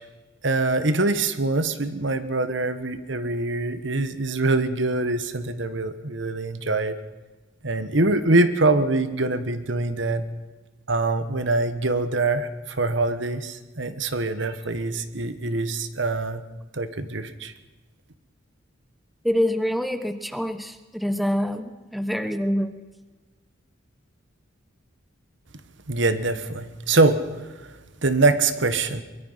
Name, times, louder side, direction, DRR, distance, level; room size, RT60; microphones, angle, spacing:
voice 1, 0.4-6.9 7.6-10.3 10.9-16.4 16.7-17.5 25.9-27.2 28.0-29.0, right 2 dB, 65° right, 11 dB, 1.4 m, -24 dB
voice 2, 19.2-22.7, equal, ahead, 10 dB, 1.0 m, -26 dB
23.5 x 22.0 x 5.8 m, 1.2 s
head